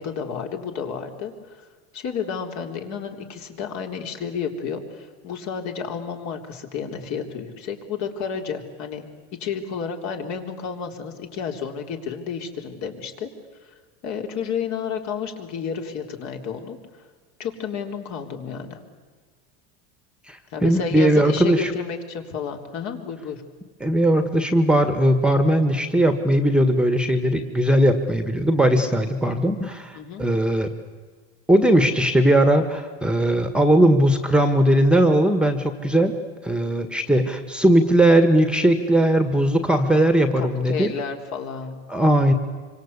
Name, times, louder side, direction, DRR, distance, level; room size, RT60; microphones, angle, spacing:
voice 1, 0.0-1.6 1.9-9.0 9.4-13.3 14.0-16.8 17.4-18.8 20.5-23.4 29.9-30.3 40.4-41.8, left 6 dB, 50° left, 4 dB, 4.0 m, -31 dB
voice 2, 20.3-21.7 23.8-30.7 31.5-36.1 36.4-40.9 41.9-42.3, right 1 dB, 5° right, 8 dB, 1.6 m, -19 dB
26.0 x 25.0 x 8.4 m, 1.5 s
supercardioid pair, 135°, 36 cm